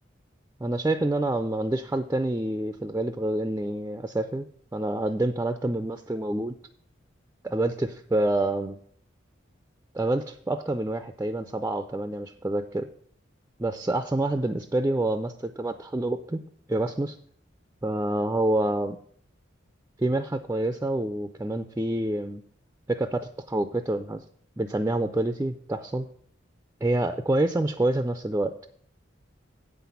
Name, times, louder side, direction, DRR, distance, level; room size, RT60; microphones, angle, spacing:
voice 1, 0.6-4.5 4.7-6.5 7.4-8.8 9.9-12.9 13.6-16.4 16.7-17.2 17.8-19.0 20.0-22.4 22.9-24.2 24.6-26.1 26.8-28.7, right 1 dB, 15° right, 8 dB, 0.4 m, -27 dB
7.9 x 5.9 x 6.9 m, 0.62 s
head